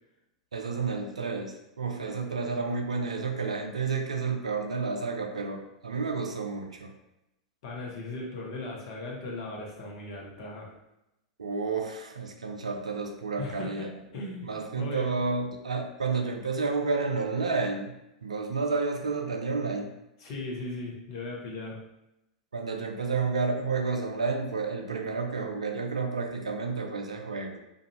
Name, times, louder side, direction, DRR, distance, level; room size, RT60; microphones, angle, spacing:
voice 1, 0.5-6.9 11.4-13.9 14.4-17.9 18.2-19.9 22.5-27.6, right 4 dB, 80° right, 3 dB, 0.4 m, -30 dB
voice 2, 7.6-10.7 13.4-15.1 20.2-21.8, left 2 dB, 55° left, -2 dB, 0.8 m, -38 dB
2.5 x 2.3 x 2.9 m, 0.88 s
figure-of-eight pair, 95°, 3 cm